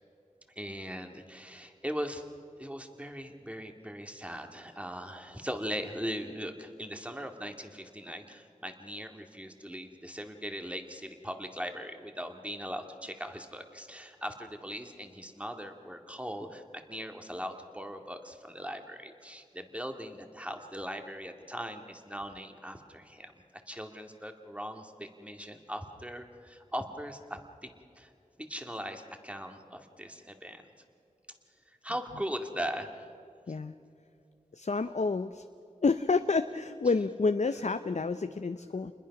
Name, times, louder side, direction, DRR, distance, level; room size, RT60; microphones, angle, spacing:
voice 1, 0.6-2.2 2.6-16.6 16.9-27.7 28.0-28.1 28.4-30.6 31.8-33.1, equal, 10° right, 4 dB, 2.2 m, -39 dB
voice 2, 34.5-35.4 35.8-38.9, left 4 dB, 60° left, 9 dB, 0.7 m, -29 dB
28.0 x 21.0 x 6.0 m, 2.6 s
wide cardioid pair, 45°, 13 cm